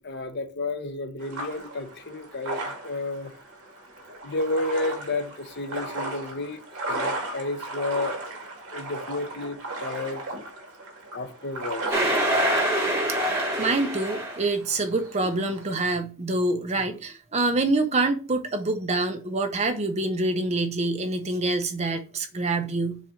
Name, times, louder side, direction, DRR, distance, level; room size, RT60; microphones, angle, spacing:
voice 1, 0.0-3.3 4.2-6.6 6.9-8.2 8.7-10.2 11.1-12.1, left 2 dB, 50° left, 0.7 m, -31 dB
sound 1, 1.2-15.8, right 2 dB, 75° right, 2.1 m, -36 dB
sound 2, 11.9-14.5, right 1 dB, 10° right, 1.5 m, -25 dB
voice 2, 13.6-23.0, right 2 dB, 30° right, 0.7 m, -26 dB
7.2 x 2.6 x 5.7 m
head